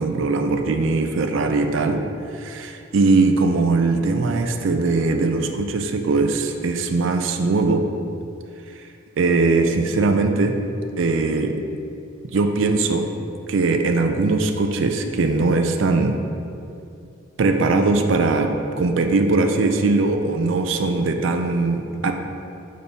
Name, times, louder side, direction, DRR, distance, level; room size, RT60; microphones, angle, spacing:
voice 1, 0.0-2.0 2.3-7.9 9.2-10.6 11.0-11.6 12.3-13.1 13.5-16.1 17.4-22.1, right 3 dB, 65° right, 5 dB, 0.4 m, -20 dB
6.4 x 5.3 x 3.4 m, 2.5 s
head